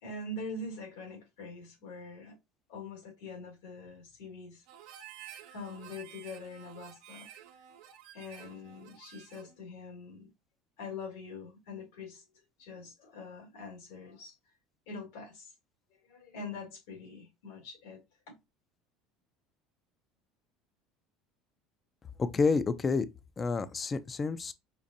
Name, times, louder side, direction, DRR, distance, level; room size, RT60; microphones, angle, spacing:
voice 1, 0.0-2.4 2.7-4.6 5.5-7.6 8.1-10.3 10.8-12.2 12.6-14.4 14.9-15.5 16.0-18.4, left 3 dB, 85° left, 2.3 m, -44 dB
Harmonica, 4.7-9.6, right 10 dB, 70° right, 0.8 m, -51 dB
voice 2, 22.2-23.1 23.4-24.5, left 4 dB, 20° left, 0.3 m, -29 dB
5.2 x 2.5 x 2.5 m
supercardioid pair, 130°, 0 cm